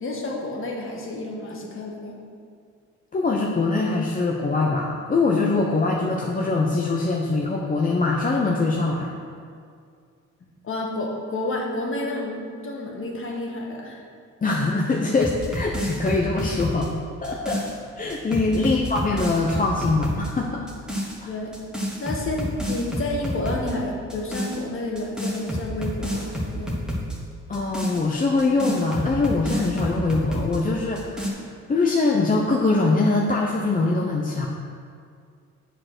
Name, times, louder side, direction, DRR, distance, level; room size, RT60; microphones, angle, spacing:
voice 1, 0.0-2.2 10.6-14.0 18.6-18.8 21.2-21.6 22.0-26.8, left 2 dB, 45° left, -1 dB, 1.6 m, -30 dB
voice 2, 3.1-9.1 14.4-16.9 17.2-17.6 18.0-20.7 21.2-21.3 27.5-31.4 31.7-34.5, left 3 dB, 30° left, -1 dB, 0.7 m, -23 dB
sound 1, 15.1-17.7 18.1-20.3 20.7-21.2 21.5-23.7 24.1-24.6 25.0-27.2 27.5-30.6 31.0-31.3, equal, ahead, 1.4 m, -29 dB
7.5 x 4.6 x 6.0 m, 2.2 s
cardioid pair, 90°, 30 cm